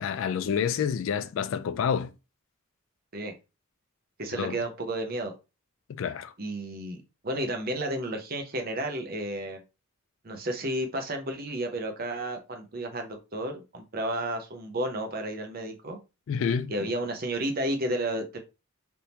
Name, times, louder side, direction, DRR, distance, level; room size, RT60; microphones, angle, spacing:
voice 1, 0.0-2.1 4.3-4.6 6.0-6.3 16.3-16.7, left 7 dB, 65° left, 0.3 m, -28 dB
voice 2, 4.2-5.3 6.4-9.6 10.2-16.0 16.7-18.4, right 1 dB, 45° right, 0.7 m, -32 dB
3.4 x 2.7 x 2.8 m
head